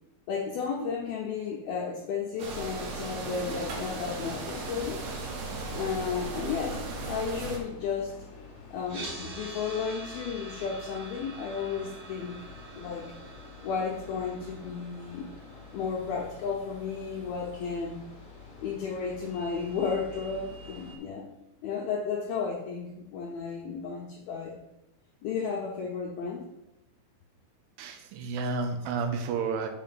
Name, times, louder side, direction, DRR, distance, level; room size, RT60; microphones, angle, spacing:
voice 1, 0.3-5.0 5.7-8.2 8.7-12.4 12.8-13.1 13.6-15.3 15.7-18.0 18.6-21.3 21.6-24.6 25.2-26.5, left 5 dB, 80° left, -2 dB, 2.2 m, -33 dB
sound 1, 2.4-7.6, right 3 dB, 65° right, 2.7 m, -36 dB
sound 2, 6.3-21.0, left 4 dB, 50° left, 1.6 m, -48 dB
sound 3, 8.8-18.9, right 2 dB, 40° right, 1.9 m, -47 dB
voice 2, 27.8-29.7, right 4 dB, 85° right, 5 dB, 3.3 m, -31 dB
6.4 x 5.1 x 5.8 m, 0.91 s
omnidirectional pair, 5.4 m